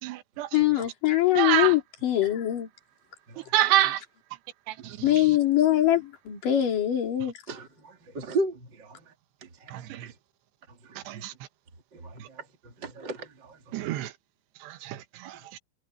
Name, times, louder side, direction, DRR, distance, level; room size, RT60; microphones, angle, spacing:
voice 1, 0.0-0.6 1.4-1.8 3.4-4.0 4.7-5.4 9.7-10.1 11.0-11.3 12.2-12.3 13.7-14.1 14.6-15.6, right 14 dB, 90° right, 3.3 m, -28 dB
voice 2, 0.5-2.7 5.0-7.3, left 13 dB, 55° left, 4.6 m, -23 dB
voice 3, 4.8-5.2 7.5-9.1 9.4-10.1 10.8-11.2 11.9-13.8, right 2 dB, 30° right, 2.4 m, -36 dB
omnidirectional pair, 4.8 m